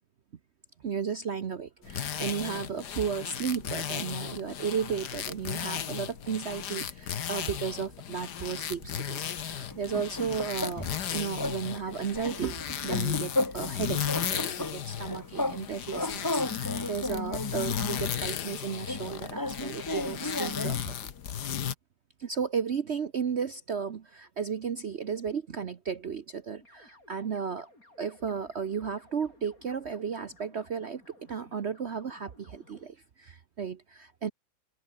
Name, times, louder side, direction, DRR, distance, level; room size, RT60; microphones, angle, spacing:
voice 1, 0.8-14.0 14.3-20.9 22.2-27.7 28.0-31.0 31.3-34.3, right 6 dB, 45° right, 1.1 m, -34 dB
sound 1, 1.8-21.7, left 9 dB, 80° left, 1.8 m, -35 dB
sound 2, 9.7-11.1 11.4-11.6 11.9-13.8 14.1-15.6 15.9-18.1 18.9-20.9, left 2 dB, 10° left, 1.5 m, -33 dB
sound 3, 26.6-32.9, left 2 dB, 55° left, 8.3 m, -58 dB
open air
omnidirectional pair, 1.8 m